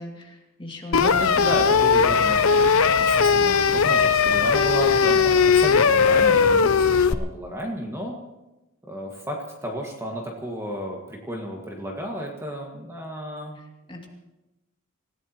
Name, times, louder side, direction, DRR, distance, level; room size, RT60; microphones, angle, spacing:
voice 1, 0.0-1.5 13.9-14.1, equal, 25° left, 0 dB, 2.6 m, -37 dB
sound 1, 0.9-7.1, left 5 dB, 70° left, 0.7 m, -18 dB
voice 2, 1.0-8.2 8.9-13.6, equal, 15° right, 0 dB, 1.8 m, -32 dB
26.5 x 16.0 x 3.1 m, 1.0 s
head